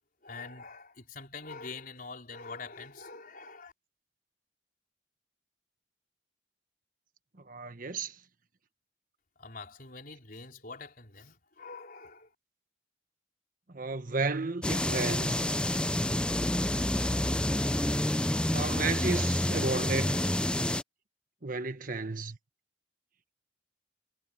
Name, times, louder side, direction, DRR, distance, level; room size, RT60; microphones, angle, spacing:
voice 1, 0.2-3.7 9.4-12.3, left 4 dB, 55° left, 4.8 m, -45 dB
voice 2, 7.5-8.1 13.7-15.4 18.5-20.3 21.4-22.4, right 3 dB, 50° right, 1.3 m, -33 dB
sound 1, 14.6-20.8, left 1 dB, 5° left, 0.5 m, -28 dB
head